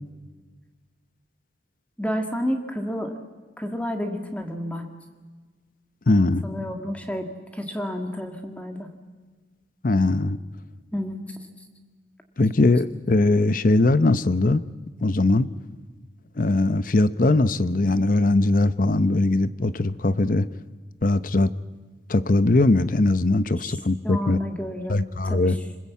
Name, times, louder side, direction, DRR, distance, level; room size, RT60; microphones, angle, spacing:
voice 1, 2.0-3.2 3.6-4.9 6.4-8.9 10.9-11.4 23.6-23.8 24.0-25.6, equal, 5° left, 4 dB, 1.7 m, -30 dB
voice 2, 6.1-6.4 9.8-10.4 12.4-14.6 15.0-15.5 16.4-20.5 21.0-21.5 22.1-24.4 24.9-25.6, left 2 dB, 45° left, 15 dB, 0.7 m, -20 dB
26.5 x 20.5 x 8.4 m, 1.4 s
head